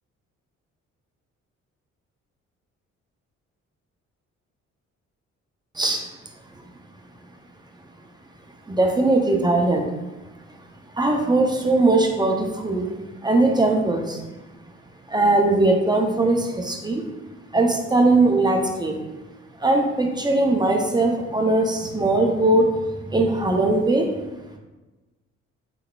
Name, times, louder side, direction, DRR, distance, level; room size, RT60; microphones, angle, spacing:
voice 1, 5.8-6.1 8.7-9.9 11.0-12.9 13.2-14.2 15.1-17.0 17.5-19.0 19.6-22.7 23.1-24.1, right 2 dB, 10° right, 2 dB, 0.6 m, -20 dB
4.1 x 3.7 x 2.3 m, 1.1 s
figure-of-eight pair, 40°, 38 cm